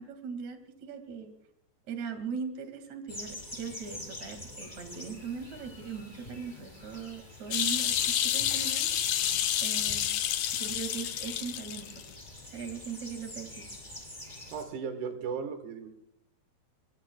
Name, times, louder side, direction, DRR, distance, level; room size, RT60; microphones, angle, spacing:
voice 1, 0.0-1.3 1.9-8.9 9.6-10.2 10.6-12.0 12.5-13.6, right 6 dB, 50° right, 6 dB, 3.0 m, -40 dB
sound 1, 3.1-14.6, left 1 dB, 10° left, 5.4 m, -46 dB
sound 2, 7.5-12.0 12.4-12.5, left 10 dB, 85° left, 1.5 m, -29 dB
voice 2, 14.5-15.9, right 6 dB, 75° right, 7 dB, 3.5 m, -36 dB
27.0 x 23.0 x 2.3 m, 0.71 s
omnidirectional pair, 4.8 m